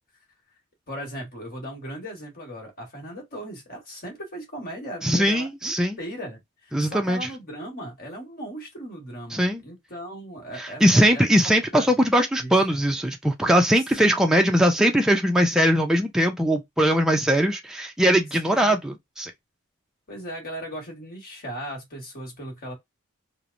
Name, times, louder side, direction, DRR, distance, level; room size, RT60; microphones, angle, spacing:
voice 1, 0.9-11.2 11.7-11.9 12.4-12.8 14.0-14.1 18.4-18.8 20.1-22.7, equal, 45° left, 1.2 m, -37 dB
voice 2, 5.0-6.0 6.7-7.3 9.3-9.6 10.6-19.3, equal, 5° right, 0.4 m, -21 dB
3.0 x 2.0 x 2.5 m
head